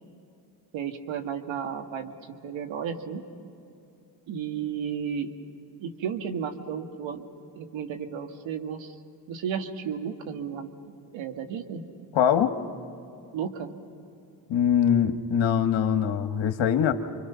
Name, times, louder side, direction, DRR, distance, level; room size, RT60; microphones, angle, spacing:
voice 1, 0.7-2.1 2.4-3.2 4.3-5.3 5.8-7.3 7.6-8.9 9.3-10.7 11.1-11.8 13.3-13.7, right 7 dB, 75° right, 5 dB, 1.9 m, -33 dB
voice 2, 12.1-12.5 14.5-16.9, left 8 dB, 70° left, 7 dB, 1.6 m, -23 dB
29.5 x 24.5 x 5.8 m, 2.7 s
supercardioid pair, 55°, 46 cm